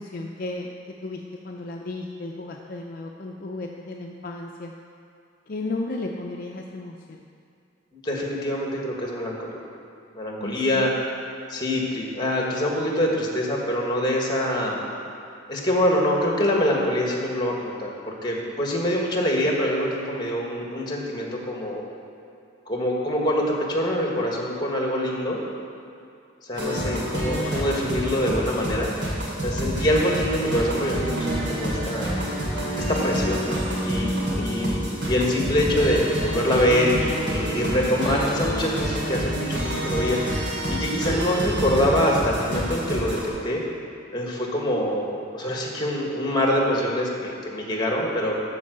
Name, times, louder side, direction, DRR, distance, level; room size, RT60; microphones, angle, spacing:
voice 1, 0.0-4.7 5.5-7.2 10.4-10.9 34.4-34.9, left 2 dB, 50° left, 0 dB, 0.5 m, -34 dB
voice 2, 7.9-9.6 10.1-10.9 11.5-14.9 15.5-21.8 22.7-25.4 26.5-28.9 29.4-32.2 32.8-40.2 40.7-43.6 44.1-48.4, left 1 dB, 25° left, -1 dB, 1.6 m, -25 dB
sound 1, 26.5-43.3, right 1 dB, 75° right, 2.7 m, -28 dB
12.5 x 4.6 x 6.6 m, 2.5 s
head